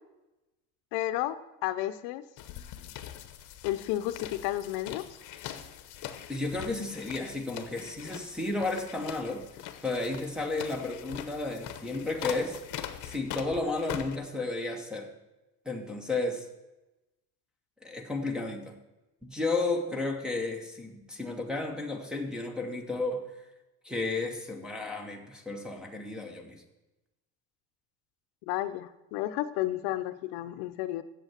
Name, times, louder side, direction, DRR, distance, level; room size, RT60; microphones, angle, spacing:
voice 1, 0.9-2.2 3.6-5.1 28.5-31.0, left 14 dB, 80° left, 12 dB, 0.7 m, -32 dB
sound 1, 2.4-14.2, left 11 dB, 50° left, 0.9 m, -42 dB
voice 2, 6.3-9.4 9.8-12.6 13.0-15.1 15.7-16.5 17.8-18.8 19.2-23.3 23.8-26.6, left 2 dB, ahead, -1 dB, 0.8 m, -33 dB
8.2 x 7.5 x 7.4 m, 1.0 s
cardioid pair, 170°, 38 cm